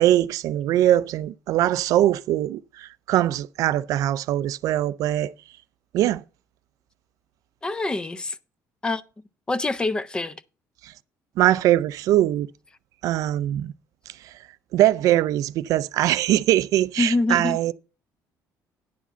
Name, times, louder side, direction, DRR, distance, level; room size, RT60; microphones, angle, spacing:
voice 1, 0.0-5.3 5.9-6.2 10.8-10.9 11.4-12.5 13.0-13.7 14.1-14.4 14.7-17.7, right 13 dB, 65° right, 0.4 m, -22 dB
voice 2, 7.6-8.4 8.8-9.0 9.5-10.3 17.0-17.6, left 2 dB, 15° left, 0.5 m, -25 dB
10.0 x 4.9 x 6.7 m
cardioid pair, 155°, 6 cm